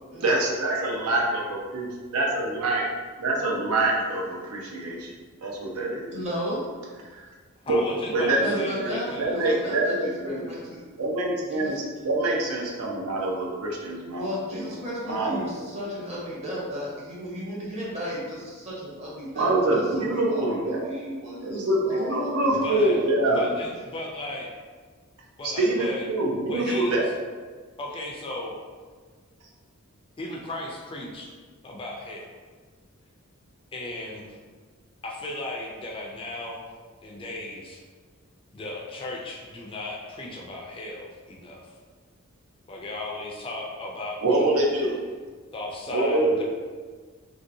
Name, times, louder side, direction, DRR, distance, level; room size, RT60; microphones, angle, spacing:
voice 1, 0.2-2.8 3.2-5.1 5.4-6.1 7.1-7.2 7.7-7.8 8.1-10.4 11.0-11.7 12.0-14.7 15.1-15.6 19.4-20.9 21.4-23.4 25.4-27.1 44.2-45.0 45.9-46.4, right 2 dB, 85° right, -2 dB, 0.6 m, -25 dB
voice 2, 6.1-6.6 8.4-10.8 11.5-11.8 14.2-23.7, equal, 30° right, -6 dB, 0.8 m, -34 dB
voice 3, 7.6-9.4 22.5-23.0 23.3-24.5 25.4-26.1 26.5-27.1 27.8-28.6 30.2-31.3 31.6-32.3 33.7-34.3 35.0-36.7 37.0-37.8 38.5-41.7 42.7-44.6 45.5-46.4, left 2 dB, 25° left, -1 dB, 0.3 m, -36 dB
3.0 x 2.7 x 2.6 m, 1.5 s
head